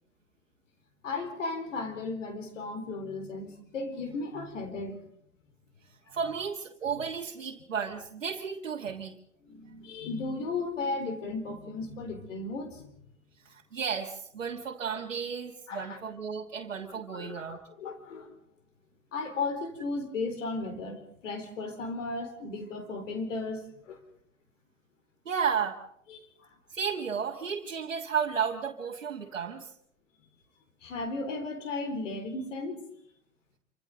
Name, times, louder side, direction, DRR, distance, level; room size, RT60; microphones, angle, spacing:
voice 1, 1.0-5.0 9.4-12.9 15.7-16.0 17.1-18.3 19.1-24.0 26.1-26.5 30.8-32.9, left 3 dB, 80° left, 6 dB, 4.1 m, -35 dB
voice 2, 6.1-9.2 13.4-17.6 25.2-25.8 26.7-29.7, right 6 dB, 90° right, -1 dB, 1.5 m, -33 dB
26.5 x 25.0 x 3.9 m, 0.68 s
hypercardioid pair, 80°, 37 cm